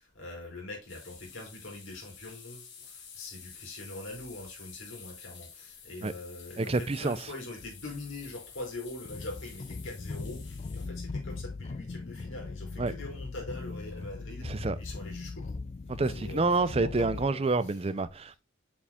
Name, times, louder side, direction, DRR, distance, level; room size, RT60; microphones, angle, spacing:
voice 1, 0.0-15.6 16.1-17.8, left 2 dB, 75° left, 3.9 m, -43 dB
sound 1, 0.9-10.9, left 6 dB, 60° left, 2.2 m, -50 dB
voice 2, 6.6-7.2 12.8-12.9 14.4-14.8 15.9-18.4, right 3 dB, 30° right, 0.5 m, -28 dB
sound 2, 7.6-17.3, left 3 dB, 30° left, 0.3 m, -40 dB
6.9 x 4.9 x 3.5 m
head